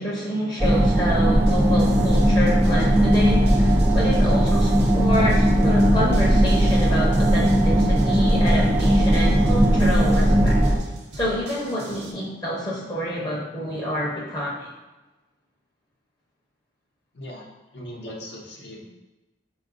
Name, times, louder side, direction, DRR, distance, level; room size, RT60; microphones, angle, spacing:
voice 1, 0.0-10.6 11.1-14.7, equal, 20° left, -4 dB, 0.6 m, -28 dB
sound 1, 0.6-10.8, equal, 10° right, 0.3 m, -18 dB
sound 2, 1.5-12.1, right 1 dB, 60° right, 0.5 m, -39 dB
voice 2, 17.7-18.8, equal, 65° left, -2 dB, 0.6 m, -38 dB
4.3 x 2.3 x 3.7 m, 1.1 s
head